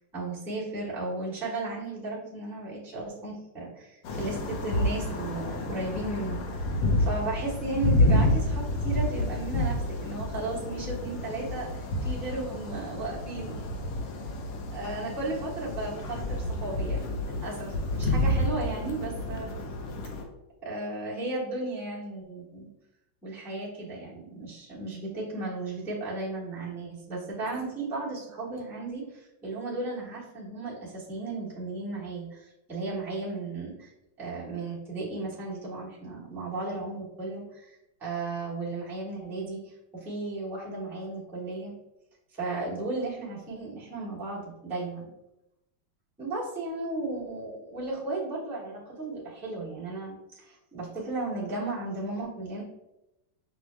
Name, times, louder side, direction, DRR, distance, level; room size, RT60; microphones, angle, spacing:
voice 1, 0.1-6.7 7.0-13.6 14.7-19.5 20.6-22.7 23.2-33.9 34.2-37.7 38.0-41.7 42.3-45.1 46.2-52.6, right 2 dB, ahead, -8 dB, 0.7 m, -35 dB
sound 1, 4.0-20.2, left 1 dB, 70° left, 1.2 m, -29 dB
6.0 x 2.0 x 3.3 m, 0.91 s
omnidirectional pair, 2.3 m